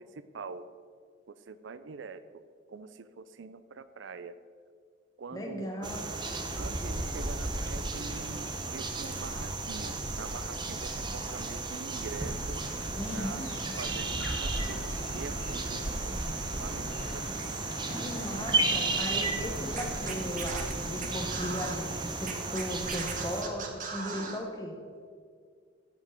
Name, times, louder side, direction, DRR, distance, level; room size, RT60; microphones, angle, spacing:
voice 1, 0.3-0.7 1.5-2.2 2.7-2.9 3.2-4.4 5.2-5.9 6.6-12.6 13.1-13.4 13.8-16.2 16.6-17.6, right 4 dB, 80° right, 13 dB, 0.5 m, -44 dB
voice 2, 5.3-6.1 12.9-13.5 18.0-24.8, equal, 20° left, 1 dB, 1.2 m, -37 dB
sound 1, 5.8-23.4, right 2 dB, 25° right, 0.8 m, -34 dB
sound 2, 12.1-22.0, equal, 80° left, 2.1 m, -42 dB
Scratching (performance technique), 19.7-21.7 22.2-24.4, right 5 dB, 40° right, 1.2 m, -38 dB
14.5 x 5.3 x 5.1 m, 2.1 s
head